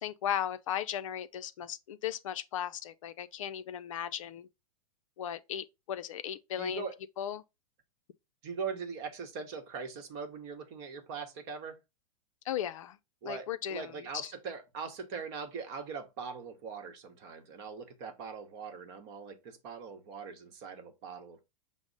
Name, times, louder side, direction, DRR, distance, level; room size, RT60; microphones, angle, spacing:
voice 1, 0.0-4.5 5.2-6.9 7.2-7.4 12.5-13.0 13.3-13.9 14.2-14.3, left 10 dB, 65° left, 0.4 m, -36 dB
voice 2, 6.6-6.9 8.4-11.8 13.2-21.5, right 5 dB, 45° right, 0.9 m, -41 dB
5.9 x 2.0 x 3.7 m
figure-of-eight pair, 100°, 19 cm